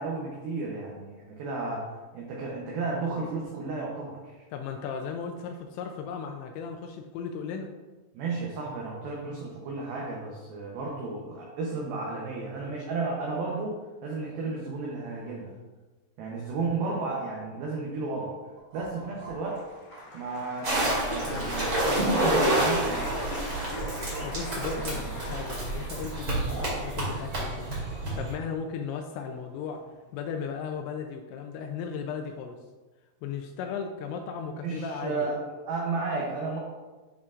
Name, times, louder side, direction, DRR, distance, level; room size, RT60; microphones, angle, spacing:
voice 1, 0.0-4.4 8.1-15.5 16.2-18.3 18.7-19.6 20.1-23.1 24.9-25.1 34.6-36.6, right 3 dB, 85° right, -2 dB, 2.1 m, -33 dB
voice 2, 4.5-7.7 24.2-27.7 28.2-29.8 30.1-32.6 33.2-35.3, left 6 dB, 85° left, 4 dB, 2.7 m, -36 dB
sound 1, 18.6-21.6 22.0-26.9, right 2 dB, 70° right, 1.9 m, -44 dB
Applause, 18.9-29.3 29.6-30.2, left 2 dB, 65° left, 2.6 m, -44 dB
sound 2, 20.6-28.3, right 1 dB, 40° right, 2.3 m, -28 dB
11.0 x 4.4 x 2.4 m, 1.3 s
omnidirectional pair, 5.5 m